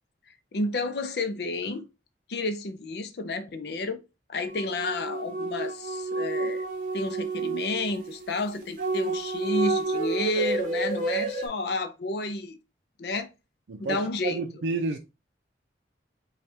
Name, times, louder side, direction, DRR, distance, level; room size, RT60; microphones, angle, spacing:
voice 1, 0.5-1.9 2.3-4.0 4.3-6.7 6.9-12.6 13.0-13.3 13.8-14.4, left 2 dB, 65° left, 0.5 m, -31 dB
sound 1, 4.5-11.5, right 3 dB, 50° right, 0.9 m, -30 dB
voice 2, 13.7-15.0, right 3 dB, 85° right, 0.5 m, -30 dB
4.3 x 2.3 x 3.2 m
head